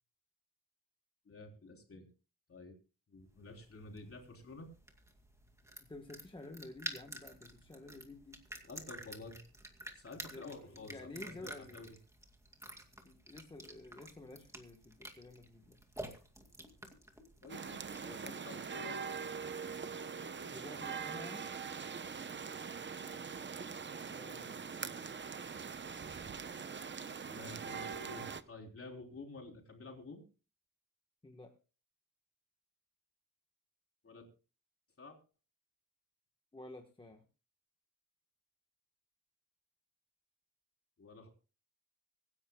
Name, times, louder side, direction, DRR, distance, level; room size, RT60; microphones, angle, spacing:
voice 1, 1.3-2.1 2.5-2.7 3.1-4.7 8.6-9.4 9.9-12.0 17.4-19.2 23.0-23.2 27.2-30.2 34.0-34.3 35.0-35.2 41.0-41.3, left 3 dB, 40° left, 2 dB, 3.8 m, -51 dB
sound 1, 3.4-18.2, right 1 dB, 10° right, 2.3 m, -50 dB
voice 2, 5.9-8.4 10.3-11.8 13.0-15.8 20.4-21.5 24.1-25.0 31.2-31.5 36.5-37.2, left 2 dB, 15° left, 4 dB, 1.3 m, -51 dB
sound 2, 17.5-28.4, right 6 dB, 30° right, 0.8 m, -43 dB
25.0 x 11.0 x 2.3 m, 0.34 s
wide cardioid pair, 150°, 36 cm